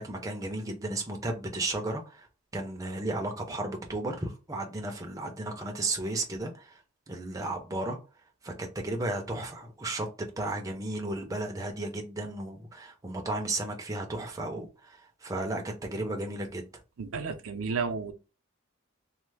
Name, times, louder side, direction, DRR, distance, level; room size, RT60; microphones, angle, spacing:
voice 1, 0.0-2.3 2.5-6.8 7.1-8.0 8.4-16.7, right 2 dB, 15° right, 0.5 m, -34 dB
voice 2, 17.0-18.1, right 5 dB, 90° right, 0.5 m, -32 dB
3.1 x 2.0 x 3.3 m
head